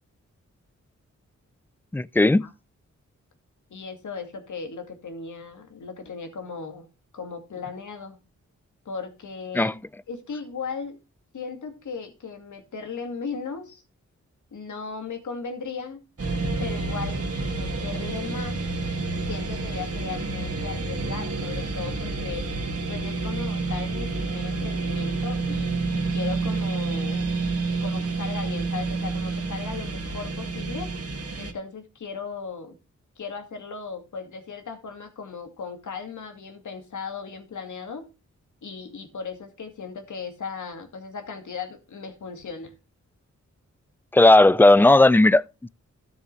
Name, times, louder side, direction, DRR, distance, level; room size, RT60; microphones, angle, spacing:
voice 1, 1.9-2.5 9.5-9.7 44.1-45.7, left 2 dB, 5° left, 0.4 m, -16 dB
voice 2, 3.7-6.9 7.1-8.2 8.9-9.7 10.1-11.0 11.3-13.8 14.5-16.0 16.6-18.6 19.2-22.5 22.9-27.3 27.8-30.9 31.4-32.8 33.2-38.0 38.6-42.7, left 5 dB, 80° left, 2.3 m, -37 dB
sound 1, 16.2-31.5, right 3 dB, 50° right, 2.1 m, -29 dB
13.5 x 7.2 x 3.3 m
cardioid pair, 65°, 30 cm